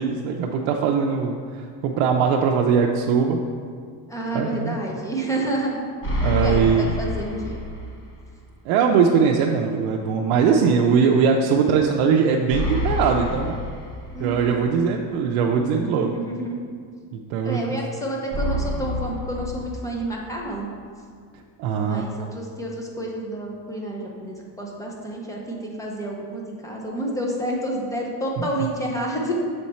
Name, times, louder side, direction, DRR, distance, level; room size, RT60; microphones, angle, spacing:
voice 1, 0.0-3.4 4.3-4.8 6.2-6.9 8.7-13.5 14.2-16.2 17.1-17.6 21.6-22.3 28.4-28.5, right 6 dB, 75° right, 1 dB, 0.6 m, -21 dB
voice 2, 4.1-5.8 6.4-7.6 14.1-14.6 15.8-16.6 17.4-20.7 21.7-29.3, right 1 dB, 5° left, -2 dB, 0.7 m, -29 dB
sound 1, 6.0-8.0 8.4-8.5 12.5-14.5 18.3-20.3, left 1 dB, 25° left, 1.0 m, -27 dB
6.5 x 4.4 x 4.2 m, 2.1 s
cardioid pair, 150°, 48 cm